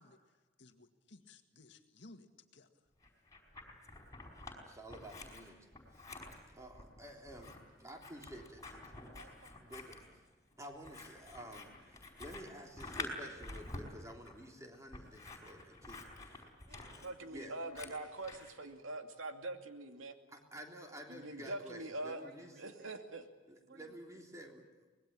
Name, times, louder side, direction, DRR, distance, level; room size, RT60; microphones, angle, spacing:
voice 1, 0.0-2.7, left 2 dB, 60° left, 7 dB, 2.0 m, -59 dB
Scissors, 3.0-4.6 4.9-18.5, left 2 dB, 15° left, 4.9 m, -49 dB
voice 2, 4.6-6.1 6.5-8.9 9.6-10.1 10.6-16.4 17.2-17.6 20.3-22.7 23.5-24.9, equal, 15° right, 2 dB, 3.4 m, -51 dB
voice 3, 9.1-9.5 12.3-13.0 16.7-18.1 22.2-23.0 23.7-24.0, right 2 dB, 55° right, 5 dB, 2.4 m, -62 dB
voice 4, 17.0-20.1 21.1-22.2 22.6-23.2, right 2 dB, 85° right, 5 dB, 2.6 m, -43 dB
25.0 x 20.5 x 8.9 m, 1.3 s
head